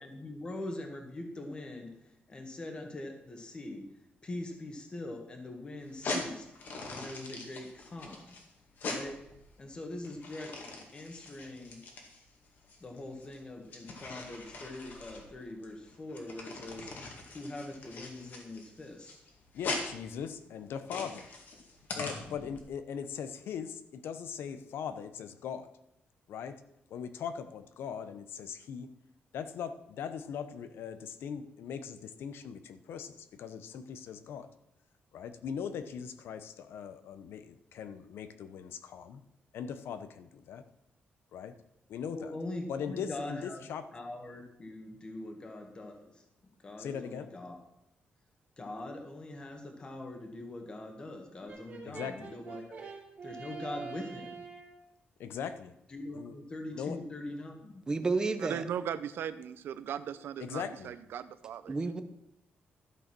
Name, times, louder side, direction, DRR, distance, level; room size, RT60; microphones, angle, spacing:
voice 1, 0.0-1.9 2.3-3.8 4.2-6.4 6.9-8.3 8.8-9.2 9.6-10.5 10.9-11.8 12.8-16.9 17.3-19.1 42.1-43.6 43.9-46.1 46.6-47.6 48.6-52.8 53.2-54.4 55.9-57.8, left 2 dB, 25° left, 1.7 m, -42 dB
sound 1, 5.8-22.6, left 3 dB, 55° left, 2.1 m, -42 dB
voice 2, 19.5-21.3 22.0-25.7 26.3-26.6 26.9-28.9 29.3-34.5 35.1-39.2 39.5-40.6 41.3-41.5 41.9-42.4 42.7-43.9 46.8-47.3 51.8-52.3 55.2-55.7 56.1-56.4 56.7-57.0 60.4-60.9, left 7 dB, 90° left, 0.9 m, -40 dB
Brass instrument, 51.5-54.8, right 5 dB, 40° right, 2.6 m, -45 dB
voice 3, 57.9-58.6 61.7-62.0, right 3 dB, 20° right, 0.8 m, -30 dB
voice 4, 58.4-61.7, right 9 dB, 70° right, 0.7 m, -38 dB
12.5 x 6.7 x 6.1 m
wide cardioid pair, 175°, 4 cm